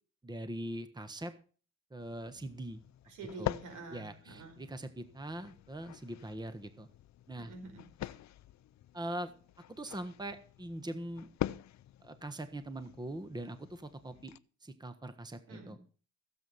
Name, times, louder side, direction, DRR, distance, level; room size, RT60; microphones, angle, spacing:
voice 1, 0.2-1.3 1.9-2.8 3.4-3.5 3.9-6.9 7.3-7.5 8.9-9.3 9.7-11.3 12.0-14.3 14.6-15.8, right 1 dB, 15° right, 10 dB, 1.4 m, -42 dB
sound 1, 2.0-14.4, left 13 dB, 65° left, 0.7 m, -45 dB
voice 2, 3.0-4.6 7.4-8.1 15.5-15.8, right 3 dB, 85° right, 5 dB, 5.3 m, -48 dB
16.0 x 8.0 x 5.7 m, 0.40 s
cardioid pair, 90°, 30 cm